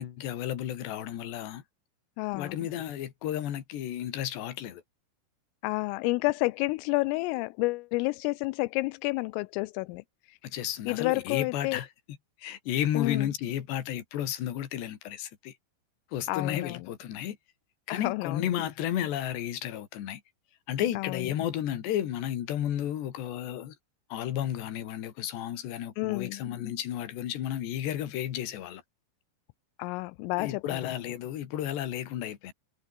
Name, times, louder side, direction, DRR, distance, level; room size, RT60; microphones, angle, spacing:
voice 1, 0.0-1.6 2.3-4.8 10.4-11.9 12.4-15.5 16.1-17.4 17.9-20.2 20.7-23.8 24.1-28.8 30.4-32.5, left 11 dB, 60° left, 4.2 m, -32 dB
voice 2, 2.2-2.6 5.6-10.4 10.9-11.8 12.9-13.3 16.3-16.8 17.9-18.5 21.0-21.3 26.0-26.4 29.8-30.8, left 24 dB, 90° left, 3.2 m, -30 dB
omnidirectional pair, 5.8 m